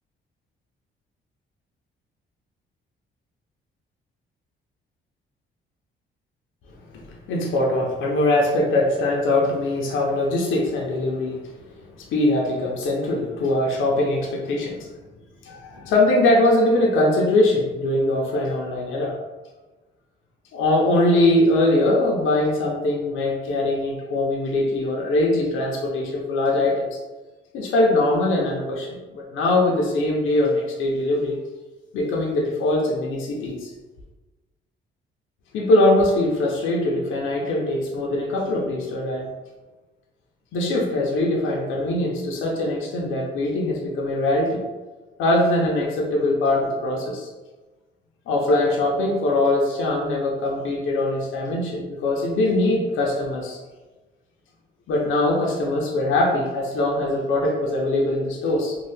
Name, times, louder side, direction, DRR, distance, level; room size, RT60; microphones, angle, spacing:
voice 1, 7.3-11.4 12.1-14.9 15.4-19.2 20.5-27.0 27.5-31.4 31.9-33.7 35.5-39.3 40.5-44.6 45.2-47.3 48.3-53.6 54.9-58.8, left 1 dB, 80° left, -2 dB, 0.6 m, -22 dB
2.7 x 2.3 x 3.3 m, 1.2 s
cardioid pair, 90°, 20 cm